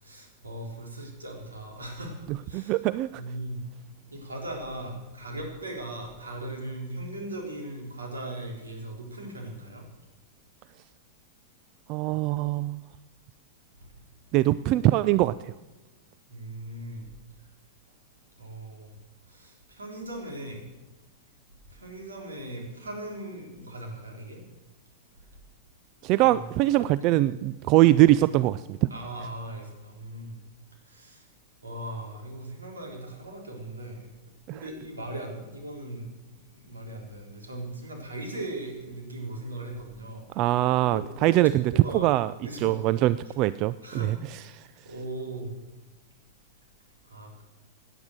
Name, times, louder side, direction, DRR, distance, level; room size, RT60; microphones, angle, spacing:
voice 1, 0.0-2.7 3.1-3.6 4.1-9.8 16.3-17.0 18.4-18.9 19.3-20.7 21.7-24.4 26.2-27.2 27.8-27.9 28.9-30.4 30.9-31.3 31.6-34.1 34.5-36.1 36.6-40.2 40.8-41.4 41.7-42.1 42.4-42.8 43.8-44.1 44.8-45.5 47.1-47.4, right 1 dB, 80° right, 1 dB, 4.2 m, -38 dB
voice 2, 2.5-3.2 11.9-12.8 14.3-15.5 26.0-28.8 34.5-34.6 40.4-42.3 42.6-44.2, right 16 dB, 40° right, 17 dB, 0.4 m, -22 dB
17.5 x 10.0 x 6.5 m, 1.1 s
figure-of-eight pair, 100°, 0 cm